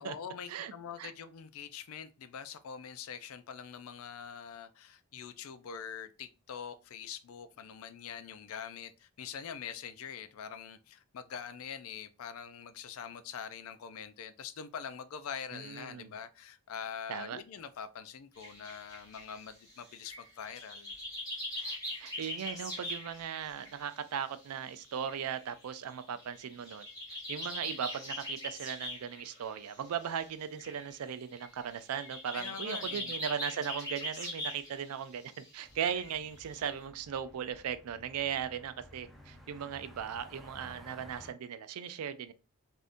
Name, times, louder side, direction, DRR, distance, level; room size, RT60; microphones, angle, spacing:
voice 1, 0.0-20.9 32.3-33.2, left 7 dB, 65° left, 0.4 m, -44 dB
voice 2, 15.5-16.2 17.1-17.4 21.5-42.3, right 8 dB, 75° right, 0.4 m, -38 dB
sound 1, 18.4-24.5 24.7-34.9 35.2-35.5 35.9-36.8, left 1 dB, 15° left, 1.5 m, -42 dB
sound 2, 35.7-41.3, equal, ahead, 0.5 m, -55 dB
3.5 x 2.6 x 2.5 m
head